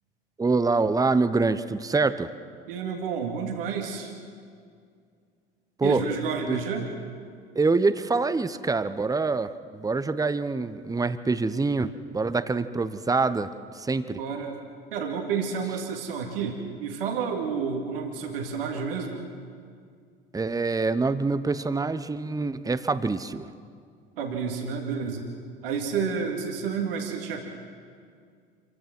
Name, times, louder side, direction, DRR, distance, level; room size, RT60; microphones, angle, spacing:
voice 1, 0.4-2.3 5.8-6.0 6.5-6.6 7.5-14.2 20.3-23.5, right 3 dB, 10° right, 13 dB, 1.0 m, -25 dB
voice 2, 2.7-4.1 5.8-6.9 14.2-14.5 14.9-19.3 24.2-25.3 25.6-27.4, right 6 dB, 75° right, 2 dB, 2.4 m, -30 dB
27.0 x 15.5 x 6.2 m, 2.2 s
figure-of-eight pair, 65°, 29 cm